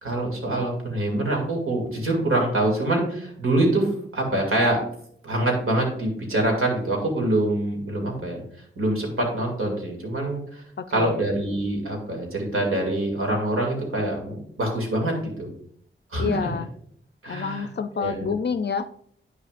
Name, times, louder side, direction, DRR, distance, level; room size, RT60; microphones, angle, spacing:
voice 1, 0.0-4.8 5.2-8.4 8.8-10.6 10.9-15.5 16.1-16.5 17.2-17.7 18.0-18.3, right 1 dB, 80° right, 1 dB, 2.4 m, -25 dB
voice 2, 10.8-11.2 16.2-16.7 17.3-18.8, left 6 dB, 55° left, 11 dB, 0.4 m, -28 dB
9.3 x 6.3 x 2.5 m, 0.65 s
wide cardioid pair, 75°, 21 cm